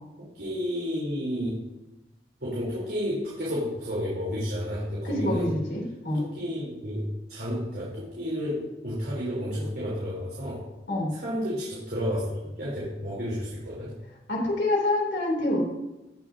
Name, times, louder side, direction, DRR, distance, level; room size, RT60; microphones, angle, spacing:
voice 1, 0.2-1.6 2.4-5.5 6.1-10.7 11.1-13.9, equal, 65° right, -7 dB, 3.4 m, -31 dB
voice 2, 5.0-6.2 10.9-11.1 14.3-15.6, left 1 dB, 85° left, -2 dB, 2.9 m, -26 dB
17.5 x 7.1 x 2.7 m, 1.0 s
head